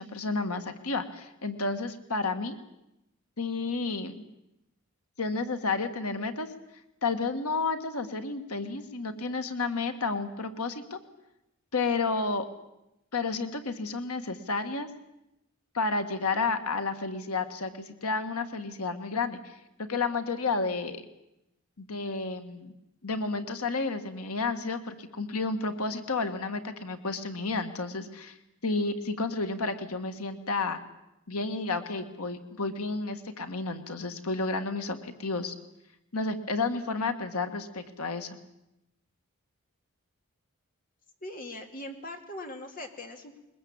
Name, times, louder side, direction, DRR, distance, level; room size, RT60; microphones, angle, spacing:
voice 1, 0.0-2.6 3.4-4.2 5.2-6.5 7.0-11.0 11.7-12.4 13.1-14.9 15.7-19.4 19.9-21.0 21.8-22.7 23.0-28.4 28.6-30.8 31.3-35.5 36.1-38.4, left 3 dB, 90° left, 8 dB, 1.7 m, -31 dB
voice 2, 41.2-43.4, left 1 dB, 40° left, 4 dB, 2.6 m, -41 dB
21.5 x 21.0 x 8.7 m, 0.89 s
head